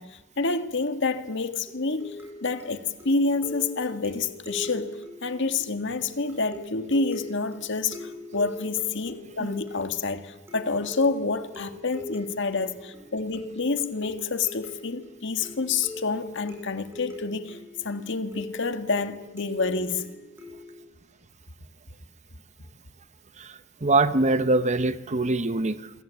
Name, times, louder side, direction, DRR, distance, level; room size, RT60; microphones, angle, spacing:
voice 1, 0.0-2.2 2.4-4.9 5.2-20.0, left 4 dB, 60° left, 1.9 m, -28 dB
sound 1, 1.7-20.9, left 2 dB, 10° right, 7.4 m, -42 dB
voice 2, 23.4-25.9, right 2 dB, 35° right, 1.0 m, -24 dB
28.0 x 22.5 x 8.5 m
head